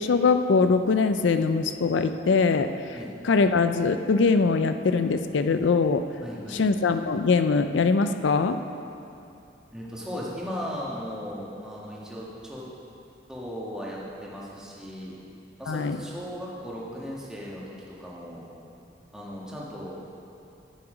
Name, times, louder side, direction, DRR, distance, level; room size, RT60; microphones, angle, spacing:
voice 1, 0.0-2.7 3.2-6.0 6.5-8.6 15.7-16.0, left 4 dB, 75° left, 9 dB, 0.4 m, -22 dB
voice 2, 6.2-6.8 9.7-12.6 13.3-15.1 15.6-18.4 19.1-20.0, equal, 5° right, -6 dB, 1.6 m, -37 dB
10.0 x 8.8 x 5.1 m, 2.7 s
head